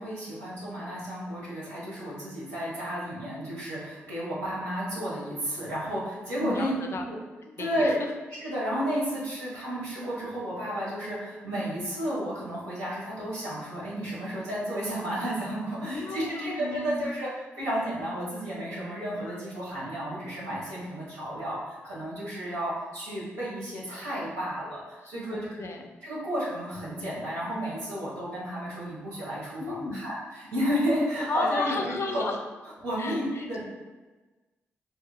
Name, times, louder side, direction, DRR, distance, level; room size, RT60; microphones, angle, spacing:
voice 1, 0.0-6.7 7.0-7.2 7.6-8.0 8.4-25.7 26.0-32.2 32.8-33.6, equal, 90° right, -8 dB, 1.2 m, -32 dB
voice 2, 6.4-7.0 7.5-8.1 15.9-17.1 19.3-19.4 25.1-25.9 29.6-30.0 31.3-32.4 33.0-33.6, left 3 dB, 50° left, 4 dB, 0.4 m, -34 dB
3.5 x 2.8 x 2.2 m, 1.2 s
hypercardioid pair, 45°, 6 cm